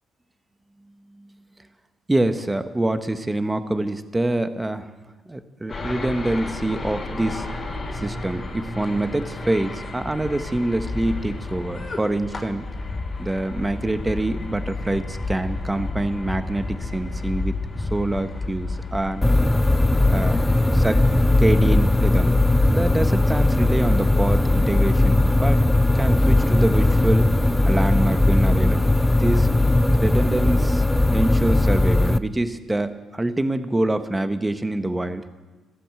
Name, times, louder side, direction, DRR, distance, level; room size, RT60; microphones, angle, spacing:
voice 1, 2.1-4.9 5.3-7.5 7.9-12.7 13.2-19.3 20.1-20.4 20.7-21.0 21.4-22.4 22.7-25.6 25.9-27.3 27.7-28.9 29.2-29.5 30.0-30.8 31.1-35.3, right 1 dB, 15° right, 10 dB, 1.2 m, -25 dB
sound 1, 5.7-24.0, left 2 dB, 35° left, 3.0 m, -32 dB
sound 2, 19.2-32.2, left 2 dB, 5° left, 0.6 m, -18 dB
14.0 x 13.0 x 7.8 m, 1.2 s
cardioid pair, 90°, 0 cm